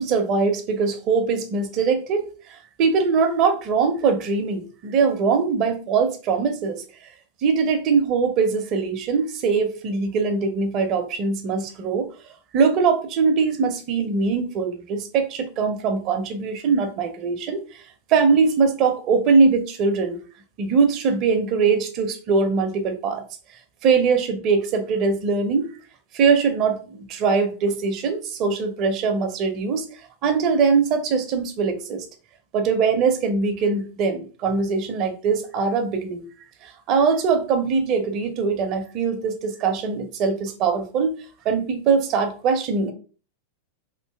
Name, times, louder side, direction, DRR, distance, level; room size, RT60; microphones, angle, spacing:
voice 1, 0.0-6.8 7.4-12.1 12.5-17.6 18.1-20.2 20.6-23.2 23.8-25.8 26.1-29.9 30.2-32.0 32.5-36.3 36.6-41.1 41.4-42.9, right 5 dB, 40° right, 0.7 m, -22 dB
3.1 x 2.8 x 3.4 m
figure-of-eight pair, 90°, 0 cm